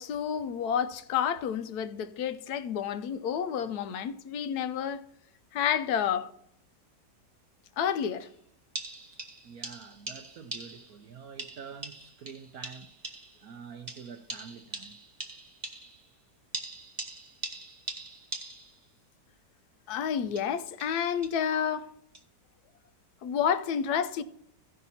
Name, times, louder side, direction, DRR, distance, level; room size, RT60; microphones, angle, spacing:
voice 1, 0.0-5.0 5.5-6.3 7.8-8.3 19.9-21.9 23.2-24.2, left 8 dB, 70° left, 1.1 m, -30 dB
sound 1, 8.2-8.3 8.7-11.0 11.4-13.5 13.9-16.1 16.5-18.8 20.2-21.5 22.1-22.2, right 2 dB, 25° right, 1.3 m, -42 dB
voice 2, 9.1-13.0 13.4-15.0, right 6 dB, 65° right, 1.1 m, -47 dB
15.5 x 5.7 x 4.1 m
omnidirectional pair, 1.9 m